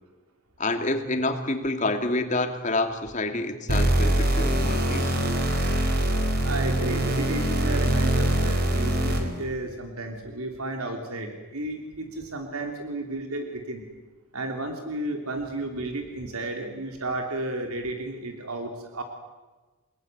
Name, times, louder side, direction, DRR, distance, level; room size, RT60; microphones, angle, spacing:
voice 1, 0.6-5.4, left 2 dB, 35° left, 6 dB, 2.6 m, -28 dB
sound 1, 3.7-9.4, right 1 dB, 45° right, 4.4 m, -23 dB
voice 2, 6.4-13.8 14.3-19.0, right 2 dB, 85° right, 3 dB, 3.3 m, -33 dB
30.0 x 19.5 x 9.4 m, 1.3 s
head